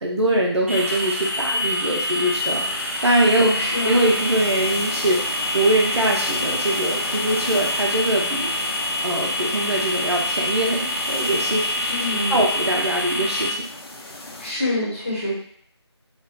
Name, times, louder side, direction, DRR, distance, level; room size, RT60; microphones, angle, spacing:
voice 1, 0.0-2.6 3.0-3.5 3.8-8.5 9.0-13.6, right 1 dB, 70° right, -2 dB, 0.6 m, -22 dB
sound 1, 0.7-13.5, left 1 dB, 30° right, 0.4 m, -26 dB
sound 2, 2.3-14.5, left 1 dB, 60° left, 0.7 m, -36 dB
voice 2, 3.4-3.9 11.9-12.4 14.4-15.3, left 1 dB, 25° left, -8 dB, 0.9 m, -26 dB
4.2 x 2.1 x 2.3 m, 0.63 s
figure-of-eight pair, 165°, 15 cm